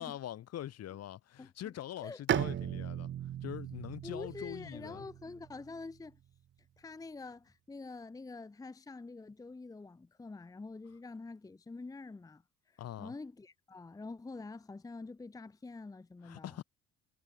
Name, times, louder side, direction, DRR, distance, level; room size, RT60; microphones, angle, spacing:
voice 1, 0.0-3.1 3.4-5.1 12.8-13.1 16.2-16.6, left 12 dB, 60° left, 2.6 m, -43 dB
Bowed string instrument, 2.3-5.9, right 11 dB, 40° right, 0.7 m, -37 dB
voice 2, 4.0-6.2 6.8-12.4 12.7-16.6, left 3 dB, 10° left, 0.8 m, -46 dB
cardioid pair, 110°, 29 cm